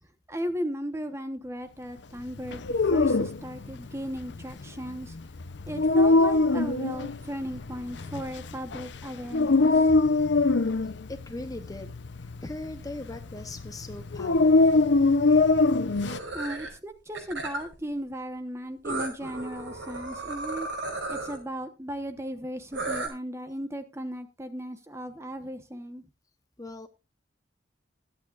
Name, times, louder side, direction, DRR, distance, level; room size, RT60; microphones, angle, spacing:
voice 1, 0.3-5.1 5.7-9.9 16.3-20.7 21.1-26.0, equal, 15° right, 1.1 m, -36 dB
Dog, 2.4-16.2, left 3 dB, 65° left, 0.7 m, -23 dB
voice 2, 10.7-11.9 12.2-14.9 26.6-26.9, left 2 dB, 20° left, 0.8 m, -40 dB
sound 1, 15.9-16.7 17.1-17.7 18.8-21.4 22.7-23.1, right 2 dB, 85° right, 5.4 m, -34 dB
22.0 x 8.6 x 2.5 m
head